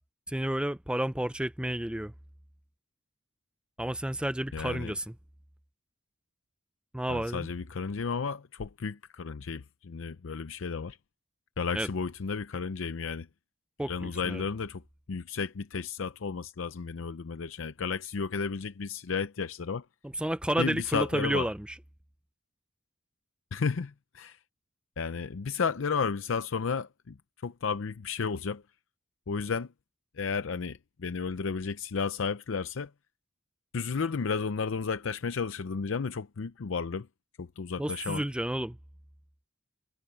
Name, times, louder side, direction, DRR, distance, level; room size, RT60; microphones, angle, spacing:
voice 1, 0.3-2.1 3.8-5.0 6.9-7.5 11.7-11.9 13.8-14.4 20.2-21.7 37.8-38.8, right 1 dB, 5° right, 0.5 m, -31 dB
voice 2, 4.5-5.0 7.1-11.0 11.6-13.3 13.9-14.8 15.1-19.9 20.6-21.5 23.5-24.4 25.0-28.6 29.3-29.7 30.1-32.9 33.7-37.1 37.4-38.2, left 5 dB, 85° left, 0.6 m, -33 dB
head